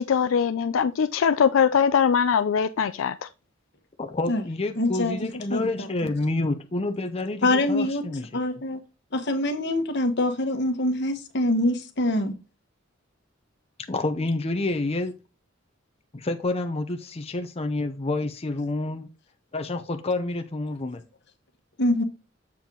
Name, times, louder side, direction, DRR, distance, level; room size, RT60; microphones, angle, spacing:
voice 1, 0.0-3.1, left 7 dB, 85° left, 0.4 m, -21 dB
voice 2, 4.0-8.3 13.9-15.1 16.1-19.1 19.5-21.0, left 2 dB, 30° left, 0.7 m, -28 dB
voice 3, 4.8-5.2 5.5-6.1 7.4-8.0 8.3-8.8 9.1-12.3 21.8-22.0, left 1 dB, 60° left, 1.2 m, -24 dB
7.3 x 4.5 x 3.8 m
head